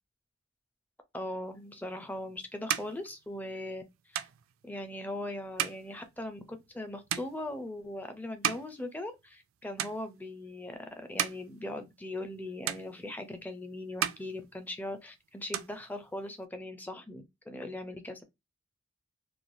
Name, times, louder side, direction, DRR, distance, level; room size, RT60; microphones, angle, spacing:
voice 1, 1.1-3.8 4.1-4.3 4.6-18.2, left 1 dB, 10° left, 0.4 m, -40 dB
sound 1, 1.8-9.5 9.8-10.5 10.9-12.4 12.7-13.5 13.8-15.1 15.3-16.4, right 11 dB, 85° right, 0.4 m, -37 dB
3.1 x 2.3 x 2.6 m
head